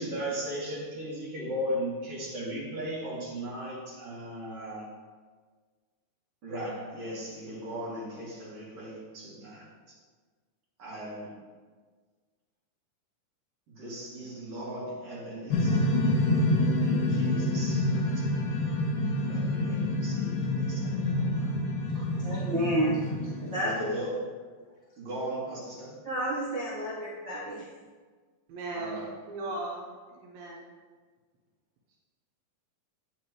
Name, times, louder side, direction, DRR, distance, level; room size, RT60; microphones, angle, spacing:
voice 1, 0.0-4.9 6.4-10.0 10.8-11.3 13.7-15.9 16.8-18.4 19.1-21.5 23.5-24.1 25.0-26.0 28.7-29.1, equal, 45° right, -7 dB, 2.7 m, -37 dB
sound 1, 15.5-23.9, left 1 dB, 70° left, 2.2 m, -27 dB
voice 2, 21.9-23.1 23.4-23.9 26.0-27.7, right 1 dB, 60° right, -8 dB, 1.2 m, -31 dB
voice 3, 28.5-29.0 29.3-30.6, right 2 dB, 80° right, -3 dB, 2.7 m, -37 dB
9.2 x 5.8 x 3.0 m, 1.5 s
omnidirectional pair, 4.2 m